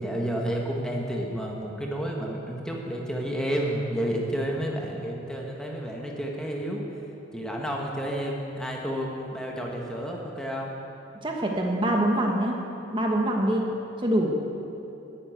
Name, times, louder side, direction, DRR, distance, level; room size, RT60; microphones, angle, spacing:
voice 1, 0.0-6.8 7.3-10.7, equal, 5° left, -1 dB, 1.3 m, -30 dB
voice 2, 11.2-12.6 12.9-13.7 14.0-14.4, right 1 dB, 25° right, 0 dB, 1.2 m, -24 dB
10.5 x 9.4 x 9.3 m, 2.9 s
head